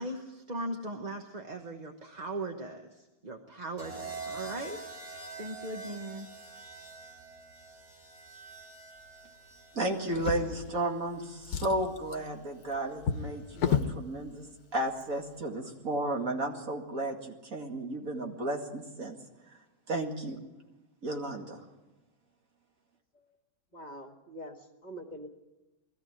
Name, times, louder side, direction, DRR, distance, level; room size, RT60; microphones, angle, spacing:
voice 1, 0.0-6.3, right 2 dB, 30° right, 3 dB, 1.2 m, -39 dB
sound 1, 3.8-11.9 13.1-13.5, right 3 dB, 75° right, 5.4 m, -46 dB
voice 2, 9.7-19.2 19.9-20.4 21.0-21.7, right 1 dB, 60° right, 2 dB, 2.6 m, -33 dB
Drawer open or close, 10.1-11.1 11.4-14.0 14.9-15.0 15.4-15.5, left 7 dB, 75° left, 1.5 m, -33 dB
voice 3, 23.7-25.3, equal, 30° left, 4 dB, 1.8 m, -44 dB
21.0 x 14.0 x 8.9 m, 1.1 s
omnidirectional pair, 1.6 m